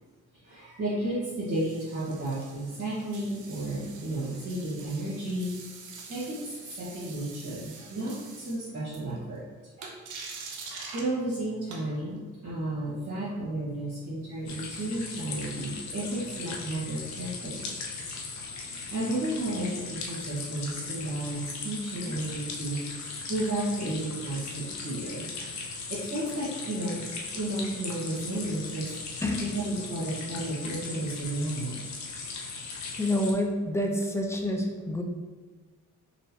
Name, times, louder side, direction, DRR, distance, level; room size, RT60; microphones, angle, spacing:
voice 1, 0.4-9.4 9.8-10.0 10.9-17.7 18.5-25.3 25.9-29.0 29.5-31.8, right 1 dB, 50° right, -11 dB, 1.4 m, -33 dB
sound 1, 1.3-9.4 9.8-11.1 11.7-12.2 16.2-16.6 20.2-20.3, right 4 dB, 80° right, 0.8 m, -45 dB
sound 2, 14.4-33.3, left 4 dB, 65° left, 0.8 m, -38 dB
voice 2, 29.2-29.5 32.9-35.0, left 1 dB, 10° left, 2 dB, 0.6 m, -28 dB
4.2 x 3.0 x 2.8 m, 1.4 s
cardioid pair, 90°, 30 cm